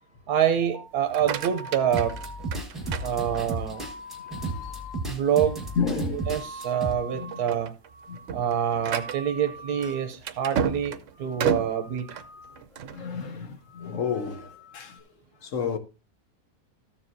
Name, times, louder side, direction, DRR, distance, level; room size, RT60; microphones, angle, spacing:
voice 1, 0.3-2.2 3.0-3.8 5.1-5.6 6.3-7.7 8.3-12.1, right 9 dB, 85° right, 1.3 m, -26 dB
sound 1, 0.6-7.6 7.9-8.4 8.6-10.1 10.4-10.8 11.1-12.6 12.9-13.3 13.6-15.0, right 1 dB, 20° left, 1.2 m, -44 dB
sound 2, 1.0-3.8 4.3-4.7 5.2-5.3 5.7-5.9 6.5-6.8 7.2-13.0, right 7 dB, 60° right, 0.9 m, -33 dB
sound 3, 1.9-6.9, right 2 dB, ahead, 1.3 m, -33 dB
voice 2, 2.7-3.3 4.2-4.7 5.7-6.3 7.1-7.4 8.1-8.2 11.4-11.7 12.8-15.0 15.4-15.8, left 6 dB, 60° left, 1.3 m, -32 dB
14.0 x 7.2 x 2.7 m
omnidirectional pair, 1.6 m